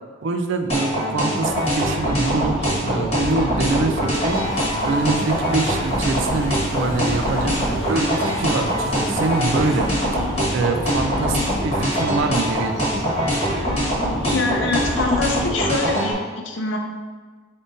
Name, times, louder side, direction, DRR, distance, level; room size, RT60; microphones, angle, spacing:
voice 1, 0.2-2.6 2.8-4.4 4.8-9.9 10.5-11.4 11.6-12.9, right 3 dB, 70° right, 6 dB, 0.4 m, -24 dB
sound 1, 0.7-16.1, equal, 30° left, 1.1 m, -23 dB
sound 2, 2.1-15.5, equal, ahead, 0.7 m, -34 dB
sound 3, 3.0-14.3, left 1 dB, 50° left, 0.9 m, -39 dB
voice 2, 14.3-16.8, left 3 dB, 70° left, 3 dB, 0.6 m, -24 dB
5.3 x 3.6 x 2.6 m, 1.4 s
head